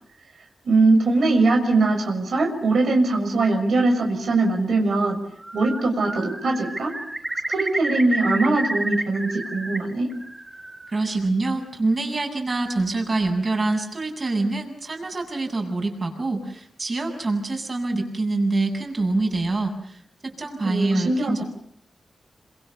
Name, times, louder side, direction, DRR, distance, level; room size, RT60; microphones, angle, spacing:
voice 1, 0.6-5.2 5.5-6.9 7.5-10.1 20.6-21.4, right 3 dB, 75° right, 2 dB, 6.4 m, -21 dB
Bird, 5.2-5.8 6.1-9.8 10.1-10.9, right 1 dB, 15° right, 5.1 m, -30 dB
voice 2, 10.9-21.4, right 2 dB, 40° right, 4 dB, 7.9 m, -25 dB
28.5 x 27.0 x 6.9 m, 0.68 s
wide cardioid pair, 90°, 0 cm